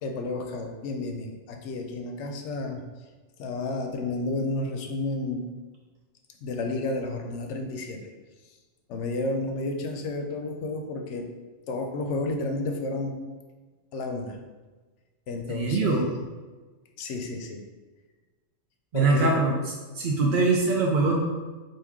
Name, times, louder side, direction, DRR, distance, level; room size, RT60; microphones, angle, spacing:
voice 1, 0.0-2.8 3.4-5.5 6.4-8.1 8.9-11.3 11.7-13.2 13.9-14.4 15.3-16.1 17.0-17.6 18.9-19.4, left 2 dB, 70° left, 4 dB, 0.8 m, -31 dB
voice 2, 15.5-16.1 18.9-19.5 19.9-21.2, right 3 dB, 65° right, -1 dB, 0.5 m, -22 dB
4.6 x 2.7 x 3.5 m, 1.3 s
omnidirectional pair, 1.4 m